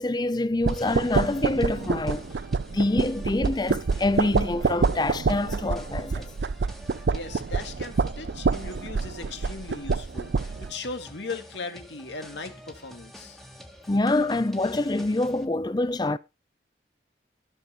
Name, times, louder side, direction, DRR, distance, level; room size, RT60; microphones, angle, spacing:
voice 1, 0.0-2.3 2.7-6.3 13.9-16.2, left 2 dB, 25° left, 0.5 m, -26 dB
sound 1, 0.6-10.7, right 4 dB, 75° right, 0.5 m, -27 dB
sound 2, 0.7-15.4, equal, ahead, 1.4 m, -48 dB
voice 2, 7.1-13.4, left 3 dB, 85° left, 2.0 m, -38 dB
13.5 x 6.7 x 4.3 m
head